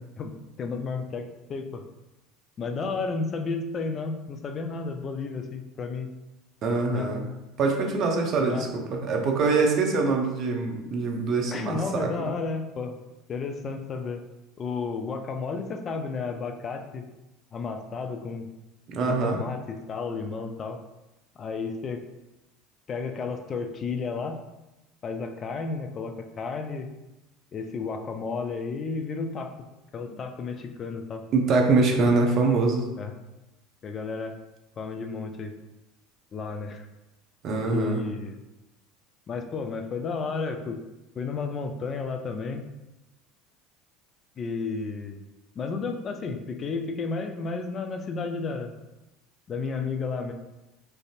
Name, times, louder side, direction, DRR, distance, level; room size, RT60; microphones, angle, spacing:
voice 1, 0.2-1.8 2.6-6.1 6.9-7.1 8.4-8.7 11.5-13.0 13.3-14.2 14.6-17.1 17.5-18.5 19.1-20.8 21.4-22.0 22.9-24.4 25.0-26.9 27.5-29.5 29.9-31.2 33.0-33.1 33.8-34.4 34.8-35.5 36.3-36.9 37.7-38.4 39.3-40.8 41.2-42.6 44.4-45.2 45.6-48.7 49.5-50.3, left 4 dB, 40° left, 5 dB, 0.4 m, -32 dB
voice 2, 6.6-7.3 7.6-12.1 18.9-19.4 31.3-32.9 37.4-38.0, right 3 dB, 50° right, 2 dB, 0.6 m, -24 dB
3.2 x 2.5 x 2.4 m, 0.98 s
hypercardioid pair, 75°, 0 cm